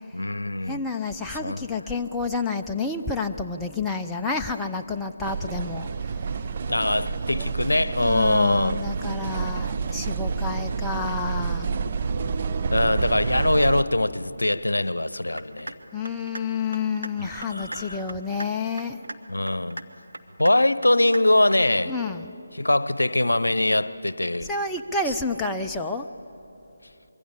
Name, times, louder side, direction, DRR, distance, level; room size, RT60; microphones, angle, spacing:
voice 1, 0.1-0.8 1.4-1.8 6.7-8.8 12.7-15.7 17.2-18.0 19.3-19.8 20.4-21.9 22.5-24.5, left 1 dB, 70° left, 0.8 m, -23 dB
voice 2, 0.7-5.9 7.3-7.5 8.0-11.7 15.9-19.0 21.9-22.5 24.5-26.1, left 4 dB, 5° left, 0.5 m, -29 dB
sound 1, 5.2-13.8, right 5 dB, 30° right, 0.7 m, -28 dB
sound 2, 15.4-15.8 16.0-16.4 16.7-17.1 17.4-17.8 18.1-18.5 18.8-19.2 19.5-19.8 20.1-20.5 20.8-21.2 21.5-21.6, right 2 dB, 70° right, 1.5 m, -36 dB
25.5 x 23.0 x 8.6 m
figure-of-eight pair, 155°, 0 cm